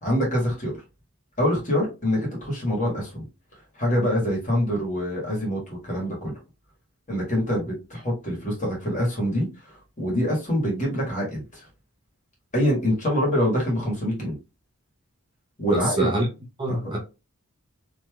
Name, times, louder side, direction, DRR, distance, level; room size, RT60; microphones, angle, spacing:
voice 1, 0.0-0.8 1.4-3.2 3.8-6.3 7.1-11.6 12.5-14.4 15.6-16.1 16.7-16.9, equal, 35° left, 1.5 m, -25 dB
voice 2, 15.7-16.3 16.6-17.0, right 1 dB, 20° right, 0.7 m, -25 dB
3.2 x 2.8 x 2.3 m
head